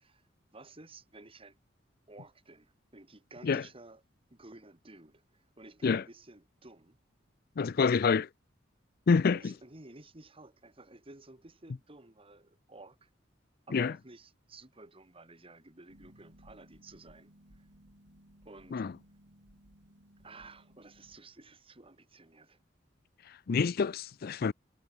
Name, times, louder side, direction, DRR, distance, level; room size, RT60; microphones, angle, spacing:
voice 1, 0.0-1.6 2.1-4.0 4.3-7.0 9.3-13.1 13.7-17.7 18.4-18.9 20.2-22.6, right 2 dB, 30° right, 2.5 m, -53 dB
voice 2, 7.6-8.3 9.1-9.5 13.7-13.9 18.7-18.9 23.5-24.5, left 5 dB, 55° left, 0.4 m, -27 dB
Harp, 15.9-21.2, equal, 65° right, 7.0 m, -60 dB
head